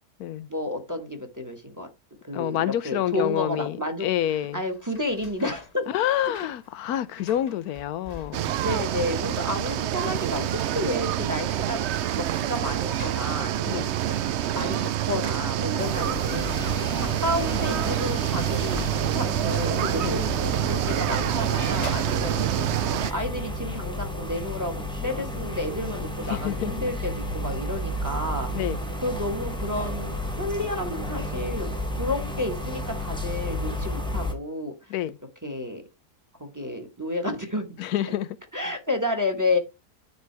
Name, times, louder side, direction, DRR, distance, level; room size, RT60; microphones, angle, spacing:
voice 1, 0.5-1.9 2.2-4.1 4.5-5.9 8.6-11.8 12.2-13.7 14.1-14.2 14.5-28.5 29.0-31.7 32.0-34.7 35.4-35.8 36.4-37.8 38.1-38.2 38.5-39.6, left 1 dB, 15° right, 1.4 m, -31 dB
voice 2, 2.3-4.6 5.9-8.6 13.7-13.9 20.0-20.2 26.3-26.7 28.5-28.8 34.9-35.2 37.8-38.4, left 11 dB, 85° left, 1.1 m, -28 dB
sound 1, 4.4-8.8 9.1-9.8 10.1-10.2 11.3-16.7 17.6-21.1 21.4-22.6, left 3 dB, 30° left, 1.0 m, -48 dB
sound 2, 8.3-23.1, right 12 dB, 65° right, 0.7 m, -27 dB
sound 3, 15.8-34.3, left 1 dB, 5° left, 1.3 m, -32 dB
9.5 x 4.3 x 4.6 m
omnidirectional pair, 1.6 m